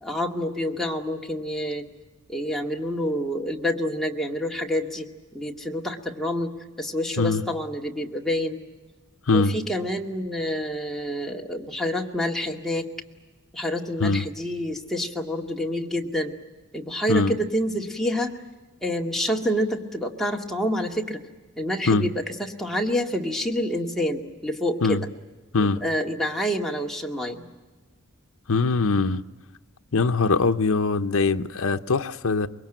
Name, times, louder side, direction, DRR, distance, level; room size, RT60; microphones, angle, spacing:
voice 1, 0.0-1.9 2.3-6.5 6.8-8.6 9.3-12.9 13.5-16.4 16.7-18.4 18.8-21.2 21.6-25.1 25.6-27.4, equal, ahead, 2.0 m, -28 dB
voice 2, 9.3-9.6 14.0-14.2 17.1-17.3 21.9-22.1 24.8-25.0 25.5-25.8 28.5-29.2 29.9-32.5, left 4 dB, 70° left, 0.8 m, -22 dB
25.0 x 22.0 x 9.1 m
head